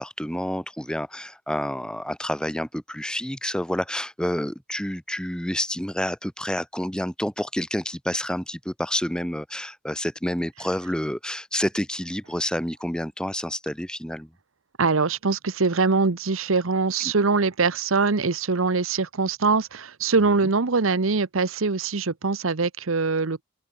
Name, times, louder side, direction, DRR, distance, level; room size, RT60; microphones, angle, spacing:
voice 1, 0.0-14.3, equal, 5° left, 2.3 m, -29 dB
voice 2, 14.8-23.4, right 4 dB, 80° right, 1.0 m, -23 dB
open air
head